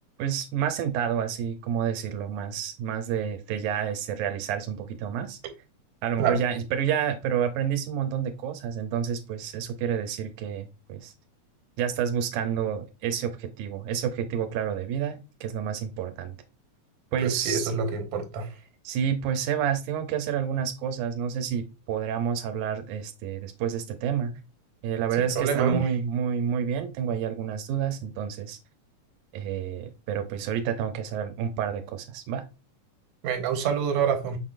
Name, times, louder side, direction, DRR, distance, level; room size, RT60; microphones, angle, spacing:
voice 1, 0.2-5.4 6.0-11.1 11.8-16.4 17.1-17.7 18.8-24.3 24.8-28.6 29.3-32.5, right 8 dB, 85° right, 2.0 m, -29 dB
voice 2, 17.2-18.5 25.2-25.8 33.2-34.4, right 7 dB, 70° right, 1.9 m, -26 dB
5.7 x 3.6 x 2.4 m
omnidirectional pair, 3.5 m